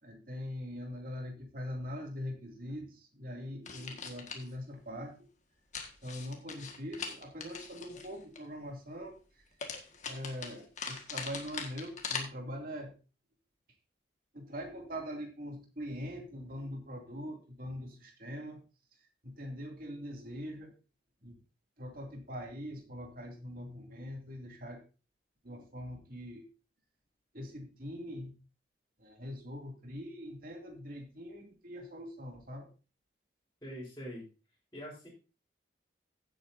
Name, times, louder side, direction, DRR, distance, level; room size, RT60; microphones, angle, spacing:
voice 1, 0.0-5.3 6.0-9.4 10.1-12.9 14.3-18.6 18.9-20.7 21.2-21.4 21.8-24.8 25.4-26.5 27.3-28.3 29.0-32.7, equal, 50° right, 2 dB, 2.6 m, -42 dB
sound 1, 3.6-4.5 5.7-8.4 9.6-12.2, left 5 dB, 40° left, 1.7 m, -41 dB
voice 2, 33.6-34.2 34.7-35.1, equal, 20° left, -9 dB, 3.9 m, -43 dB
15.5 x 8.3 x 2.7 m, 0.33 s
head